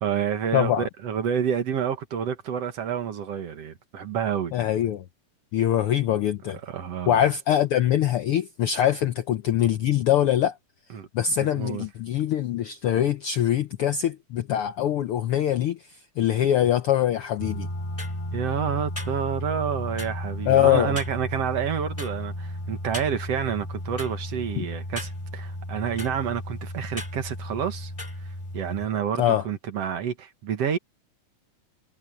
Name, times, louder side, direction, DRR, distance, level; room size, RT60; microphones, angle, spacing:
voice 1, 0.0-4.5 6.6-7.2 10.9-11.1 11.4-11.8 18.3-27.9 28.5-30.8, right 8 dB, 60° right, 2.4 m, -29 dB
voice 2, 0.5-0.9 4.5-5.0 5.5-6.6 7.1-10.6 11.1-17.7 20.5-21.0 24.6-24.7 29.2-29.4, left 11 dB, 75° left, 1.3 m, -23 dB
sound 1, 17.4-28.9, left 1 dB, 10° left, 4.9 m, -34 dB
omnidirectional pair, 3.4 m